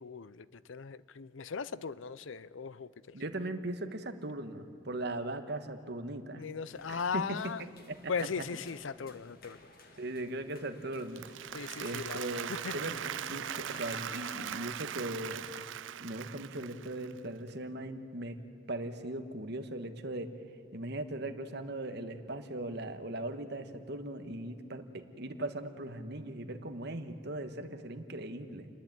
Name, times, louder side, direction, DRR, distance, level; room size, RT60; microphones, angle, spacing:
voice 1, 0.0-3.1 6.4-7.6 8.1-9.6 11.5-13.0, left 5 dB, 75° left, 18 dB, 0.6 m, -38 dB
voice 2, 3.1-6.5 6.9-7.2 7.9-8.0 8.4-8.5 10.0-11.3 11.8-15.5 16.0-18.4 18.7-20.3 20.7-28.7, right 1 dB, 55° right, 8 dB, 1.3 m, -39 dB
sound 1, 6.7-14.5, left 1 dB, 50° left, 2.0 m, -54 dB
Applause, 11.0-17.2, right 10 dB, 70° right, 0.5 m, -40 dB
29.5 x 11.0 x 9.0 m, 2.8 s
head